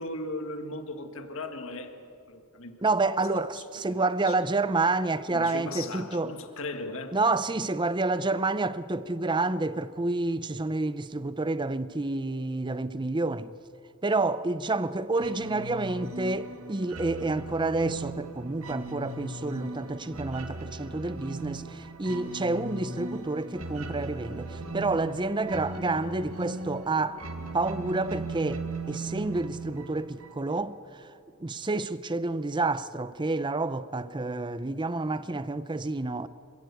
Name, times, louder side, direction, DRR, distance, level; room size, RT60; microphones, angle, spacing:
voice 1, 0.0-2.0 2.3-2.8 3.9-4.5 5.3-7.2, left 2 dB, 65° left, 1.8 m, -37 dB
voice 2, 2.8-6.3 7.1-13.5 14.0-27.2 27.5-31.1 31.4-36.3, right 3 dB, 20° right, 0.6 m, -29 dB
sound 1, 15.2-30.7, right 3 dB, 70° right, 1.6 m, -38 dB
26.5 x 15.5 x 8.3 m
head